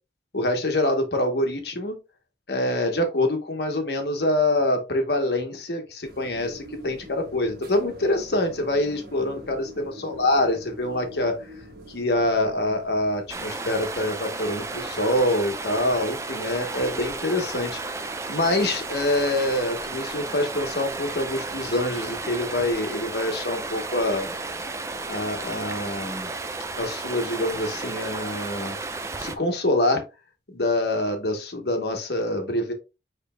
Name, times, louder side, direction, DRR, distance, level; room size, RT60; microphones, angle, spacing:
voice 1, 0.3-2.0 2.5-11.3 11.9-24.3 25.1-26.3 26.8-28.8 29.2-30.0 30.5-32.7, left 1 dB, 70° left, 5 dB, 1.1 m, -25 dB
sound 1, 6.0-13.5, equal, 60° right, 1.4 m, -44 dB
Stream, 13.3-29.4, right 3 dB, 15° right, 0.4 m, -33 dB
6.8 x 3.3 x 2.3 m, 0.27 s
head